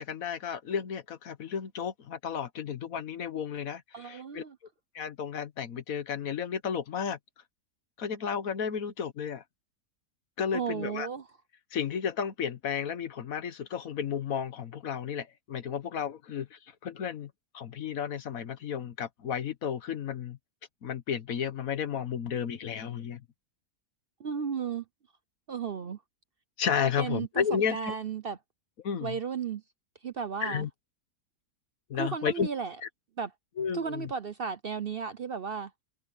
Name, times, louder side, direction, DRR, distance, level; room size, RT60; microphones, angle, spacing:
voice 1, 0.0-4.4 4.9-7.2 8.0-9.4 10.4-11.1 11.7-20.4 20.8-23.2 26.6-27.9 28.8-29.2 30.4-30.7 31.9-32.5 32.8-32.9 33.6-34.1, left 7 dB, 60° left, 1.4 m, -33 dB
voice 2, 3.9-4.6 10.5-11.3 24.2-24.8 25.5-26.0 27.0-28.4 29.0-29.6 30.0-30.7 31.9-32.8 33.2-33.3 33.7-35.7, right 6 dB, 55° right, 0.6 m, -34 dB
omnidirectional pair, 1.8 m